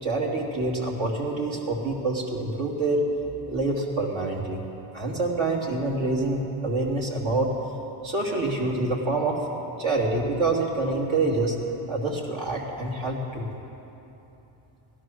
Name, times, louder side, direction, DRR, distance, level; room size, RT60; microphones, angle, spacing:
voice 1, 0.0-3.0 3.5-4.6 4.9-7.5 8.0-9.4 9.8-11.6 11.9-13.5, right 2 dB, 70° right, -1 dB, 2.8 m, -26 dB
16.5 x 12.0 x 6.3 m, 3.0 s
cardioid pair, 105°, 48 cm